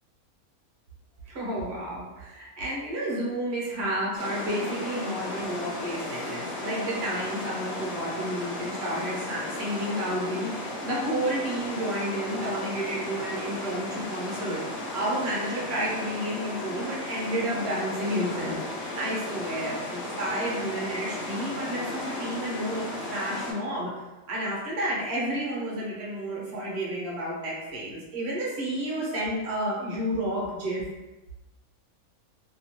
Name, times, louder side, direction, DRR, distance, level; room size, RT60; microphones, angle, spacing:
voice 1, 1.3-14.6 14.9-23.9 24.3-30.8, right 1 dB, 50° right, -5 dB, 1.0 m, -31 dB
sound 1, 4.2-23.5, left 1 dB, 55° left, 1.1 m, -35 dB
2.8 x 2.3 x 2.9 m, 1.1 s
omnidirectional pair, 1.5 m